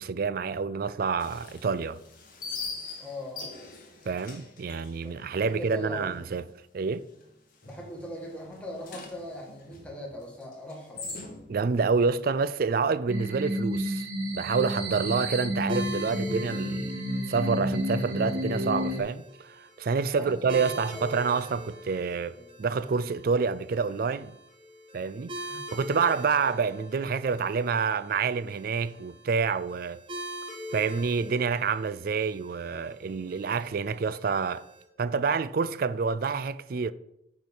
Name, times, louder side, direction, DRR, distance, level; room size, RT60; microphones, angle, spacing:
voice 1, 0.0-2.0 4.1-6.4 6.7-7.0 11.5-14.1 14.3-17.0 17.3-24.3 24.9-30.0 30.7-34.7 35.0-36.9, right 5 dB, 55° right, 0.4 m, -28 dB
sound 1, 1.2-6.1 6.3-6.4 6.9-7.3 7.6-11.7, left 4 dB, 50° left, 1.7 m, -42 dB
voice 2, 3.0-3.4 5.0-6.2 7.6-11.2 20.0-21.0 22.3-22.6 25.5-25.6, left 1 dB, 5° left, 1.9 m, -41 dB
sound 2, 13.1-19.0, equal, 85° right, 1.8 m, -31 dB
sound 3, 15.7-34.8, equal, 30° right, 2.1 m, -43 dB
9.3 x 4.7 x 5.5 m
head